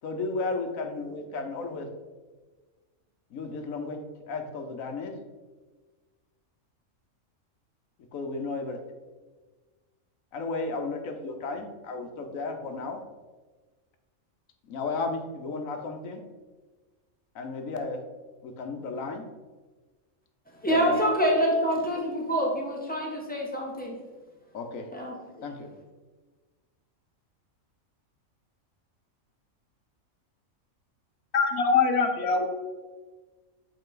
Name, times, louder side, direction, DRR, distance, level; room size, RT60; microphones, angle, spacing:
voice 1, 0.0-1.9 3.3-4.0 4.3-5.2 8.1-8.8 10.3-13.0 14.7-16.2 17.3-18.0 18.4-19.3 20.7-21.1 21.7-21.8 24.5-24.9 25.4-25.7, left 3 dB, 75° left, 5 dB, 1.2 m, -33 dB
voice 2, 20.6-23.9 24.9-25.1, equal, 5° left, -2 dB, 1.2 m, -26 dB
voice 3, 31.3-32.5, left 5 dB, 55° left, 4 dB, 1.0 m, -23 dB
8.0 x 4.2 x 3.8 m, 1.3 s
omnidirectional pair, 1.4 m